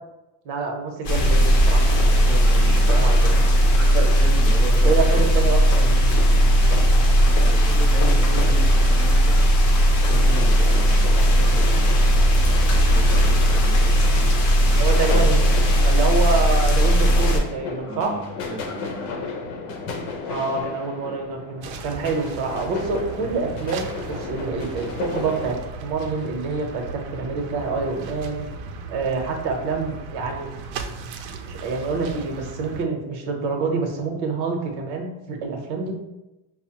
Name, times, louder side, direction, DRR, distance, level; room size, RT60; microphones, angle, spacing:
voice 1, 0.4-2.0 2.6-3.4 3.9-4.1 4.8-6.0 6.7-6.8 14.8-15.5 15.8-18.1 20.3-26.8 27.1-28.4 28.9-30.5 31.5-36.0, right 4 dB, 60° right, 2 dB, 0.8 m, -27 dB
sound 1, 1.0-17.4, equal, 40° left, 0.7 m, -17 dB
voice 2, 2.1-2.9 3.7-5.3 7.6-9.7 10.0-11.7 12.3-15.3 17.9-19.1, right 1 dB, 5° right, -5 dB, 0.6 m, -36 dB
sound 2, 10.0-25.5, left 4 dB, 75° left, 0.8 m, -35 dB
sound 3, 21.6-32.9, right 4 dB, 90° right, 0.6 m, -36 dB
5.2 x 2.0 x 2.8 m, 0.96 s
cardioid pair, 155°, 45 cm